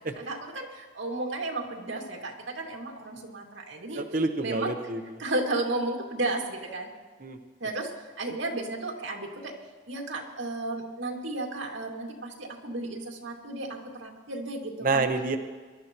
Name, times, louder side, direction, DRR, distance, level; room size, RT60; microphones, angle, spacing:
voice 1, 0.2-4.0 4.4-4.7 5.2-6.9 7.6-9.5 9.9-15.1, right 2 dB, 90° right, 0 dB, 2.2 m, -33 dB
voice 2, 4.0-5.0 7.2-7.4 14.8-15.4, right 3 dB, 45° right, 6 dB, 0.9 m, -27 dB
23.5 x 12.5 x 3.0 m, 1.4 s
head